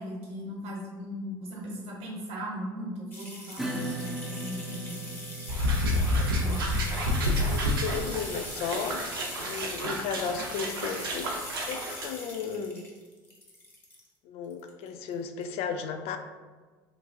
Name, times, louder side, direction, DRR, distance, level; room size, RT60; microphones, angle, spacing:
voice 1, 0.0-5.0 6.4-7.0, equal, 65° right, -2 dB, 1.1 m, -38 dB
sound 1, 3.1-14.1 14.5-15.1 15.4-15.5, left 1 dB, 20° left, 1.0 m, -42 dB
Acoustic guitar / Strum, 3.6-10.8, right 2 dB, 5° right, 0.5 m, -40 dB
sound 2, 5.5-12.1, equal, 85° right, 0.6 m, -29 dB
voice 2, 5.9-6.6 7.2-9.1 9.4-12.9 14.2-16.2, left 6 dB, 60° left, 7 dB, 0.3 m, -35 dB
3.1 x 2.3 x 3.4 m, 1.4 s
hypercardioid pair, 65°, 12 cm